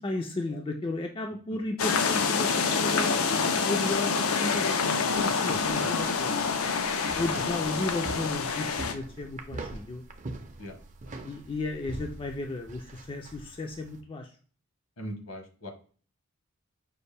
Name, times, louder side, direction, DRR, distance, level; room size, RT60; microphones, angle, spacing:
voice 1, 0.0-6.5 7.1-10.0 11.2-14.3, left 2 dB, 25° left, 2 dB, 0.4 m, -34 dB
sound 1, 1.8-8.9, left 5 dB, 85° left, 0.5 m, -27 dB
sound 2, 5.1-14.0, right 2 dB, 35° right, 0.5 m, -43 dB
voice 2, 5.5-5.9 10.6-10.7 15.0-15.7, equal, 65° left, 4 dB, 1.0 m, -40 dB
5.3 x 2.5 x 3.3 m, 0.42 s
head